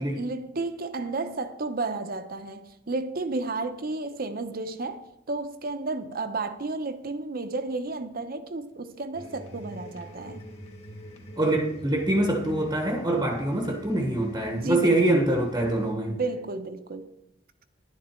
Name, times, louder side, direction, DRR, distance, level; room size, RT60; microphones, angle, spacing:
voice 1, 0.0-10.4 14.5-15.3 16.1-17.1, right 3 dB, 50° right, 0.8 m, -32 dB
sound 1, 9.1-15.9, equal, 35° left, 1.9 m, -45 dB
voice 2, 11.4-16.2, right 1 dB, 20° right, 1.0 m, -24 dB
11.0 x 10.5 x 4.4 m
head